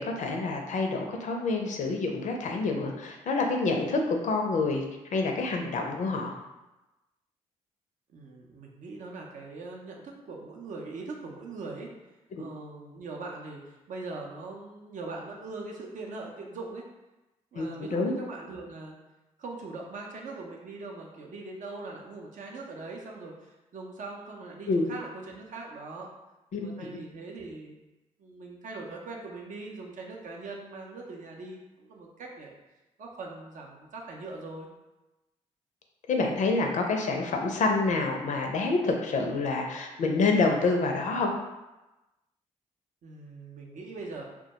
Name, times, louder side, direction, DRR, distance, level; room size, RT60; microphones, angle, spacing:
voice 1, 0.0-4.8 5.1-6.3 17.6-18.1 24.7-24.9 26.5-26.7 36.1-41.3, left 3 dB, 55° left, 2 dB, 0.4 m, -27 dB
voice 2, 8.1-11.9 12.4-16.8 17.5-19.0 19.4-26.1 26.6-27.8 28.2-32.6 33.0-34.7 43.0-44.2, right 3 dB, 60° right, 0 dB, 0.5 m, -41 dB
2.2 x 2.1 x 2.8 m, 1.0 s
hypercardioid pair, 45°, 15 cm